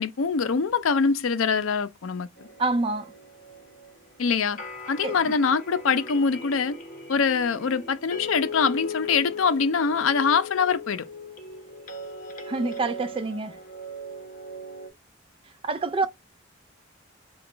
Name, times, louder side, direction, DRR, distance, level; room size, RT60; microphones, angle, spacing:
voice 1, 0.0-2.5 4.2-4.6 4.9-6.8 7.1-11.1, left 5 dB, 85° left, 0.5 m, -24 dB
sound 1, 2.4-14.9, left 2 dB, 40° left, 1.0 m, -39 dB
voice 2, 2.6-3.1 5.0-5.3 12.5-13.6 15.6-16.1, right 3 dB, 25° right, 0.4 m, -27 dB
3.9 x 2.3 x 4.4 m
head